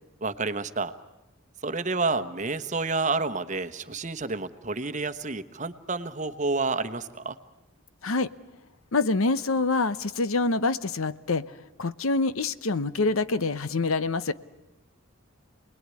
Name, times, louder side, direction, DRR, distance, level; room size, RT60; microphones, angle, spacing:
voice 1, 0.2-0.9 1.6-7.4, right 3 dB, 35° right, 10 dB, 1.1 m, -29 dB
voice 2, 8.9-11.4 11.8-14.3, left 3 dB, 85° left, 15 dB, 0.9 m, -26 dB
28.5 x 20.5 x 9.6 m, 1.0 s
head